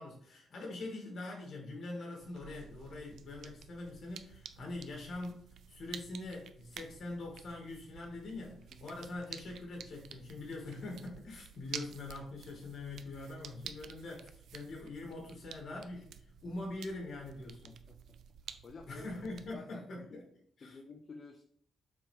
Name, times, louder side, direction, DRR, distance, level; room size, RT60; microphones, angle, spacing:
voice 1, 0.0-17.8 18.9-20.2 20.6-20.8, left 2 dB, 55° left, 0 dB, 2.4 m, -43 dB
sound 1, 2.2-19.5, right 8 dB, 75° right, 0.4 m, -51 dB
voice 2, 18.4-19.0 19.5-20.2 20.6-21.4, left 4 dB, 35° left, 4 dB, 0.5 m, -51 dB
6.9 x 4.7 x 3.5 m, 0.62 s
wide cardioid pair, 165°, 0 cm